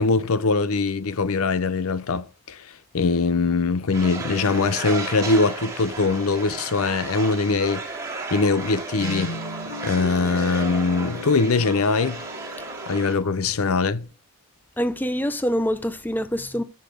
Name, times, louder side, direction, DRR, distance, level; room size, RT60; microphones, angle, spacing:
voice 1, 0.0-7.9 8.3-9.4 9.8-12.2 12.9-14.1, left 4 dB, 80° left, 0.6 m, -22 dB
sound 1, 3.9-13.1, right 3 dB, 15° right, 2.3 m, -34 dB
Guitar, 9.0-14.1, left 2 dB, 40° left, 4.1 m, -37 dB
voice 2, 14.8-16.6, equal, 10° left, 0.5 m, -25 dB
10.0 x 6.6 x 3.4 m
head